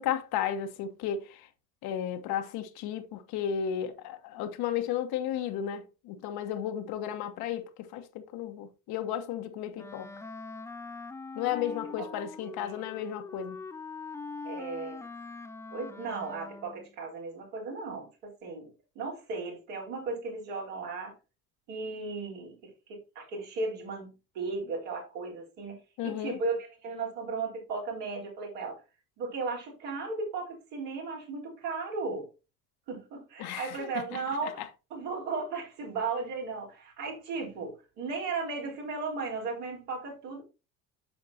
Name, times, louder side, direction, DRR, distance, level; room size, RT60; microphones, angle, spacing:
voice 1, 0.0-1.5 1.8-10.1 11.3-13.6 26.0-26.4 33.4-34.7, left 9 dB, 55° left, 1.2 m, -34 dB
Wind instrument woodwind instrument, 9.8-16.9, left 4 dB, 5° left, 0.4 m, -43 dB
voice 2, 11.5-12.1 12.4-13.1 14.4-15.0 15.7-21.1 21.7-28.8 29.2-32.3 32.9-34.6 34.9-40.4, right 4 dB, 65° right, 3.9 m, -36 dB
8.1 x 6.5 x 2.7 m
figure-of-eight pair, 60°, 45 cm